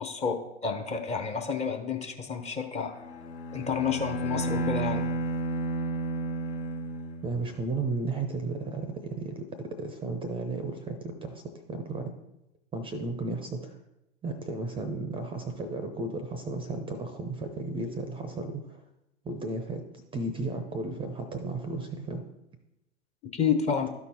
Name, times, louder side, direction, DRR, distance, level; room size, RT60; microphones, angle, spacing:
voice 1, 0.0-3.0 3.5-5.1 23.3-23.9, left 6 dB, 20° left, 5 dB, 0.7 m, -30 dB
Bowed string instrument, 2.9-7.7, right 1 dB, 65° left, 1.3 m, -32 dB
voice 2, 7.2-9.4 9.8-12.1 12.7-13.8 14.2-18.8 19.2-19.8 20.1-22.2, right 3 dB, 15° right, 8 dB, 0.6 m, -34 dB
12.0 x 4.6 x 4.2 m, 0.92 s
figure-of-eight pair, 95°, 36 cm